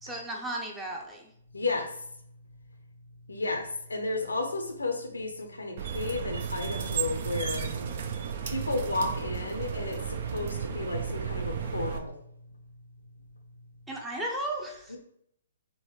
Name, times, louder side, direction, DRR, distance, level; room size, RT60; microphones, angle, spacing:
voice 1, 0.0-1.3 13.9-15.0, right 1 dB, 10° right, 0 dB, 0.6 m, -35 dB
voice 2, 1.5-1.9 3.3-7.7 8.4-12.1 14.9-15.0, left 3 dB, 85° left, 4 dB, 0.6 m, -32 dB
sound 1, 5.8-12.0, right 7 dB, 55° right, 0.4 m, -33 dB
3.7 x 2.2 x 3.1 m, 0.71 s
figure-of-eight pair, 130°, 0 cm